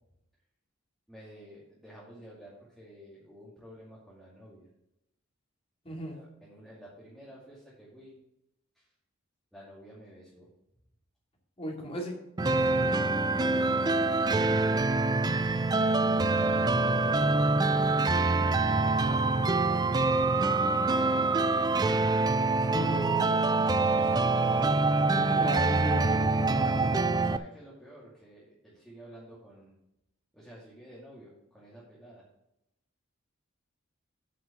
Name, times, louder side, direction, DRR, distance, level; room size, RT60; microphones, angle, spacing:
voice 1, 1.1-4.7 5.9-8.2 8.7-8.9 9.5-10.5 12.5-13.8 16.0-16.9 17.7-18.4 18.9-20.9 22.3-22.9 23.4-24.4 27.1-29.8 30.3-32.2, equal, ahead, -8 dB, 2.4 m, -50 dB
voice 2, 5.8-6.2 11.6-12.2 22.7-23.3 25.1-26.9, equal, 30° left, 0 dB, 2.3 m, -36 dB
sound 1, 12.4-27.4, right 3 dB, 20° right, 0.3 m, -25 dB
8.5 x 5.9 x 6.5 m, 0.86 s
head